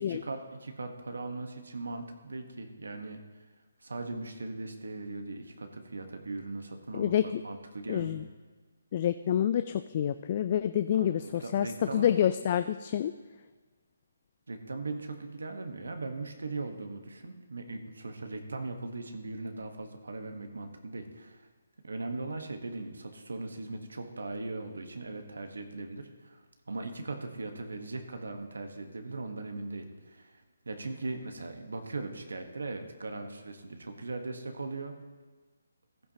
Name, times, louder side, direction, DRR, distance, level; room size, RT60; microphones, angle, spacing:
voice 1, 0.0-3.2 3.8-7.1 7.4-8.2 11.0-12.1 14.5-21.5 21.8-26.4 26.7-30.4 30.7-34.9, right 3 dB, 80° right, 5 dB, 1.2 m, -39 dB
voice 2, 6.9-7.4 7.9-8.3 8.9-13.1, left 10 dB, 35° left, 11 dB, 0.3 m, -28 dB
15.0 x 11.0 x 2.9 m, 1.3 s
hypercardioid pair, 155°, 0 cm